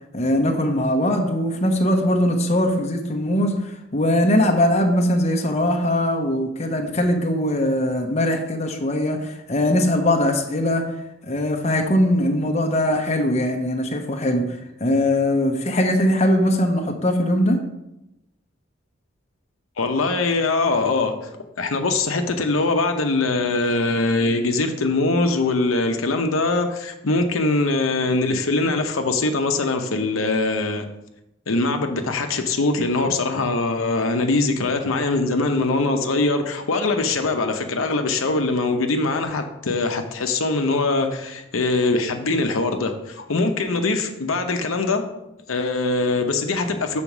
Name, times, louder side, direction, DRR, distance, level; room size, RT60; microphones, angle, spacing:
voice 1, 0.1-10.8 11.2-17.6, left 1 dB, 35° left, 3 dB, 0.8 m, -21 dB
voice 2, 19.8-21.1 21.6-30.9 31.5-45.0 45.5-47.0, left 3 dB, 85° left, 5 dB, 0.8 m, -22 dB
7.1 x 4.3 x 6.0 m, 0.89 s
head